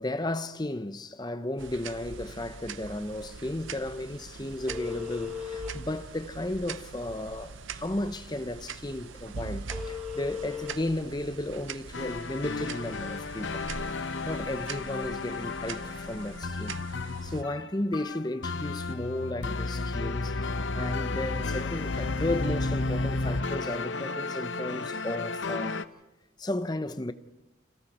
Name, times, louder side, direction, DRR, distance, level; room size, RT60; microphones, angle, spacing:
voice 1, 0.0-13.6 14.3-25.8 26.4-27.1, left 1 dB, 20° left, 0.8 m, -34 dB
sound 1, 1.6-17.4, right 5 dB, 75° right, 0.7 m, -43 dB
Telephone, 2.2-14.7, left 7 dB, 5° right, 7.2 m, -43 dB
sound 2, 11.9-25.8, left 3 dB, 65° left, 0.8 m, -33 dB
30.0 x 26.0 x 4.3 m
head